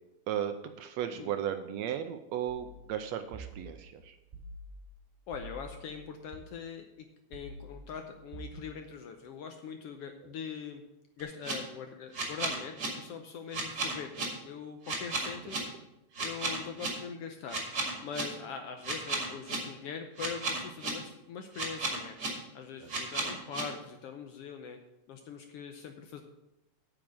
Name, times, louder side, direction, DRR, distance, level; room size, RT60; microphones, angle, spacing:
voice 1, 0.3-4.2 15.2-15.3 22.8-22.9, right 10 dB, 80° right, 8 dB, 1.7 m, -35 dB
sound 1, 2.5-6.4 7.3-8.6, right 1 dB, 20° right, 3.3 m, -48 dB
voice 2, 5.3-10.8 11.2-15.6 16.2-17.6 18.0-22.2 22.5-24.8 25.1-26.2, left 6 dB, 75° left, 5 dB, 1.5 m, -42 dB
sound 2, 11.2-11.5 12.1-12.9 13.5-14.2 14.9-15.6 16.1-16.9 17.5-18.2 18.8-19.6 20.2-20.9 21.5-22.3 22.9-23.6, right 3 dB, 35° right, 2.6 m, -33 dB
8.8 x 6.0 x 7.5 m, 0.90 s
omnidirectional pair, 3.3 m